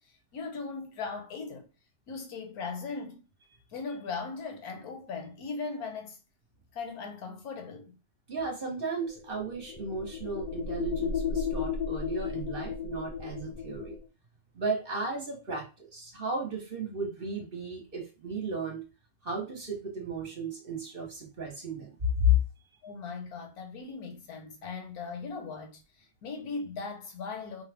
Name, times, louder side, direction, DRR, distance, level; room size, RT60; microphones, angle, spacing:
voice 1, 0.0-1.6 2.1-3.2 3.7-6.2 6.7-7.9 22.8-27.6, left 4 dB, 65° left, 1.4 m, -39 dB
voice 2, 8.3-14.0 14.5-18.9 19.2-22.4, left 1 dB, 35° right, 1.1 m, -33 dB
sound 1, 9.1-14.1, left 6 dB, 90° left, 1.2 m, -34 dB
4.9 x 2.3 x 3.4 m
omnidirectional pair, 1.8 m